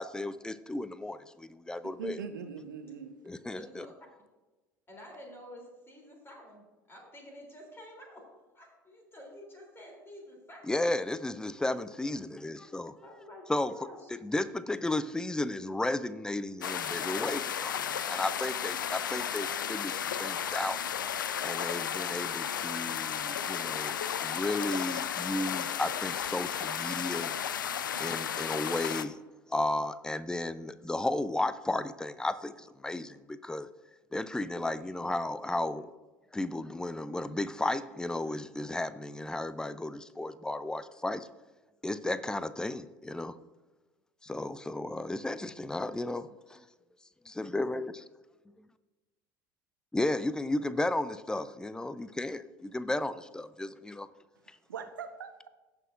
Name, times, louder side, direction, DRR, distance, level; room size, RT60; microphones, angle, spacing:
voice 1, 0.0-2.2 3.2-3.8 10.7-13.0 13.5-13.7 14.2-20.8 21.4-27.3 28.0-29.2 29.5-33.7 34.1-35.9 36.3-41.3 41.8-43.4 44.2-46.3 47.4-47.9 49.9-54.1, left 2 dB, 5° left, 15 dB, 0.5 m, -34 dB
voice 2, 1.8-3.1 54.7-55.5, right 6 dB, 75° right, 8 dB, 0.8 m, -41 dB
voice 3, 3.6-3.9 4.9-8.2 8.5-10.8 13.0-14.1, equal, 20° left, -1 dB, 3.1 m, -49 dB
sound 1, 16.6-29.0, left 9 dB, 80° left, 0.4 m, -34 dB
17.5 x 6.1 x 2.5 m, 1.2 s
figure-of-eight pair, 65°, 11 cm